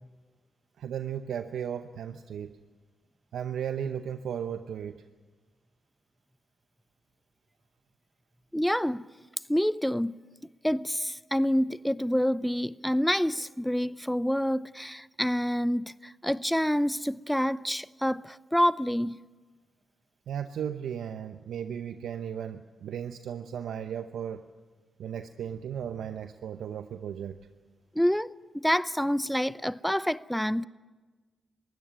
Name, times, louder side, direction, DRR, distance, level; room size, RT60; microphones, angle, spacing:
voice 1, 0.8-2.6 3.3-5.0 20.3-24.5 25.0-27.4, right 8 dB, 80° right, 0.7 m, -35 dB
voice 2, 8.5-9.1 9.5-10.1 10.6-19.2 28.0-30.7, equal, 5° left, 0.6 m, -27 dB
22.0 x 16.5 x 9.5 m
supercardioid pair, 45°, 0 cm